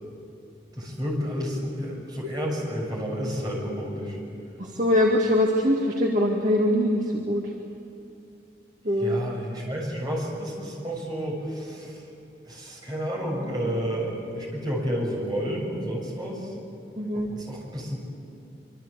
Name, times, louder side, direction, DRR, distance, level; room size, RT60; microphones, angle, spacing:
voice 1, 0.7-4.2 9.0-12.0 12.4-16.5 17.3-18.0, equal, 25° right, -2 dB, 6.7 m, -30 dB
voice 2, 4.6-7.5 8.8-9.2 17.0-17.3, left 1 dB, 45° right, -2 dB, 2.2 m, -23 dB
26.0 x 24.5 x 8.3 m, 2.7 s
head